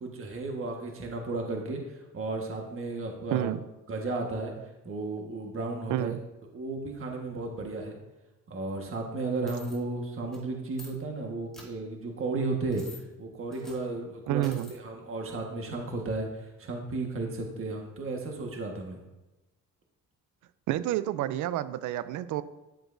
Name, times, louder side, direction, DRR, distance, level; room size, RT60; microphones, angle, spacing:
voice 1, 0.0-3.5 3.9-4.5 4.8-6.2 6.5-8.0 8.5-19.0, right 3 dB, 45° right, 1 dB, 1.5 m, -34 dB
sound 1, 9.5-9.8 10.3-10.4 10.7-10.9 11.5-11.7 12.7-13.0 13.5-13.8 14.4-14.8, left 1 dB, ahead, 2.6 m, -48 dB
voice 2, 14.3-14.7 20.7-22.4, right 13 dB, 80° right, 14 dB, 0.5 m, -29 dB
10.5 x 7.8 x 2.6 m, 1.1 s
cardioid pair, 90°, 30 cm